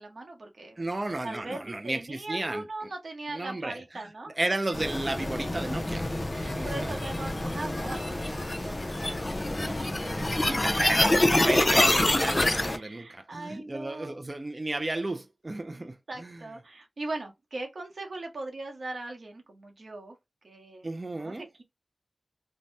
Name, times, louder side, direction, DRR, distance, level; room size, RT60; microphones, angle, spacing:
voice 1, 0.0-0.8 1.2-4.4 6.3-9.3 9.6-10.9 12.5-14.2 15.7-20.2 20.4-20.9 21.1-21.6, right 2 dB, 75° right, 0.8 m, -40 dB
voice 2, 0.8-2.6 3.3-3.8 4.4-6.1 6.4-7.0 10.1-16.4 20.8-21.5, right 2 dB, 40° right, 0.3 m, -33 dB
sound 1, 4.7-12.8, left 1 dB, 35° left, 0.5 m, -26 dB
2.7 x 2.1 x 3.2 m
wide cardioid pair, 55°, 0 cm